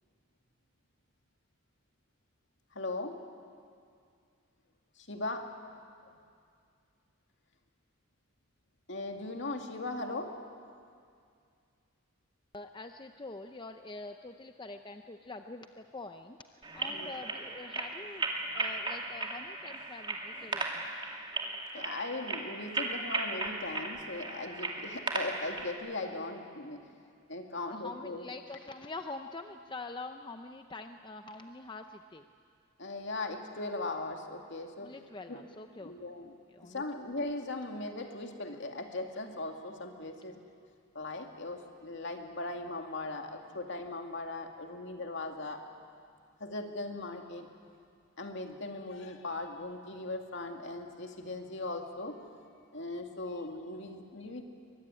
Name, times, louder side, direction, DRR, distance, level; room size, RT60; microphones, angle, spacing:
voice 1, 2.7-3.2 5.0-5.5 8.9-10.3 16.9-17.1 21.7-26.9 27.3-28.3 32.8-34.9 35.3-35.4 35.8-36.3 36.6-40.4 40.9-45.6 46.4-47.5 48.2-52.2 52.7-54.4, left 2 dB, 60° left, 3 dB, 2.3 m, -39 dB
voice 2, 12.5-20.9 27.7-32.2 34.8-35.9 36.5-36.8, left 3 dB, 20° left, 6 dB, 0.6 m, -45 dB
sound 1, 16.6-25.7, right 3 dB, 25° right, 2.5 m, -36 dB
23.5 x 21.0 x 9.9 m, 2.3 s
head